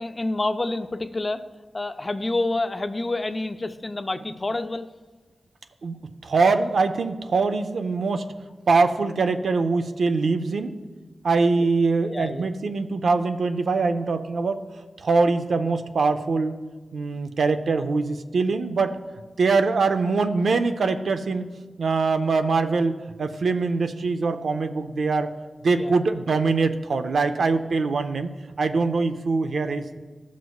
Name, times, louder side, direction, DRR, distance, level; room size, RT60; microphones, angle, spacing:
voice 1, 0.0-1.4 1.7-4.9 11.6-11.7 12.1-12.5 25.7-26.0, left 2 dB, 35° left, 9 dB, 0.5 m, -28 dB
voice 2, 6.2-8.3 8.7-10.7 11.2-14.6 15.0-16.6 16.9-19.0 19.4-21.5 21.8-25.3 25.6-28.3 28.6-30.0, right 4 dB, 90° right, 8 dB, 0.5 m, -23 dB
15.5 x 6.2 x 2.3 m, 1.3 s
wide cardioid pair, 80°, 0 cm